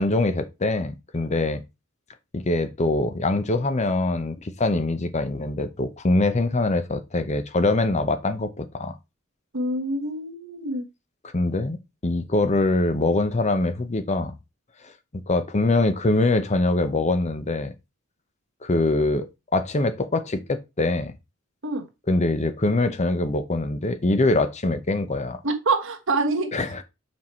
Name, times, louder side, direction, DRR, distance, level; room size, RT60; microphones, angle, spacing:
voice 1, 0.0-1.6 2.3-8.9 11.3-14.4 14.8-14.9 15.3-17.7 18.6-19.3 19.5-21.1 22.1-25.4 26.5-26.8, left 2 dB, 35° left, 0.8 m, -23 dB
voice 2, 9.5-10.9 21.6-21.8 25.4-26.5, right 2 dB, 65° right, 1.5 m, -25 dB
6.0 x 4.7 x 4.4 m
head